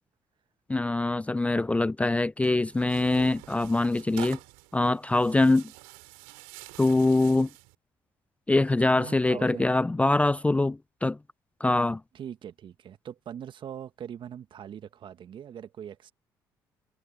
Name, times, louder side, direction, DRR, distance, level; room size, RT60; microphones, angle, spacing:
voice 1, 0.7-4.4 4.7-5.6 6.8-7.5 8.5-11.2 11.6-12.0, left 2 dB, 10° left, 0.5 m, -24 dB
Tearing, 2.4-7.7, right 30 dB, 75° right, 3.4 m, -47 dB
voice 2, 8.9-9.7 12.1-16.1, right 9 dB, 50° right, 1.9 m, -41 dB
hypercardioid pair, 50°, 10 cm